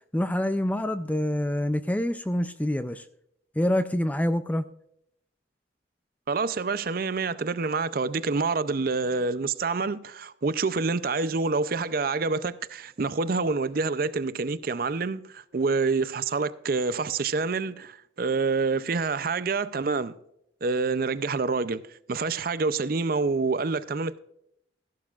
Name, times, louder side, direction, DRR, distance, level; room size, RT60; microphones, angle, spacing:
voice 1, 0.1-3.0 3.6-4.6, left 1 dB, 10° left, 0.3 m, -26 dB
voice 2, 6.3-20.2 20.6-21.8 22.1-24.2, right 4 dB, 50° right, 0.5 m, -27 dB
14.0 x 11.5 x 2.4 m
head